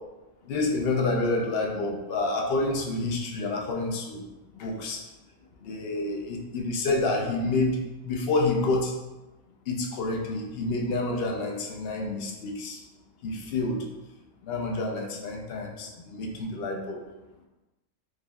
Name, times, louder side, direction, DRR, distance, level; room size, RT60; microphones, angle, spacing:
voice 1, 0.4-4.3 4.6-5.0 5.6-8.9 9.7-12.8 13.2-13.8 14.4-17.0, left 2 dB, 65° left, 1 dB, 0.6 m, -28 dB
4.8 x 2.5 x 2.2 m, 1.1 s
omnidirectional pair, 1.5 m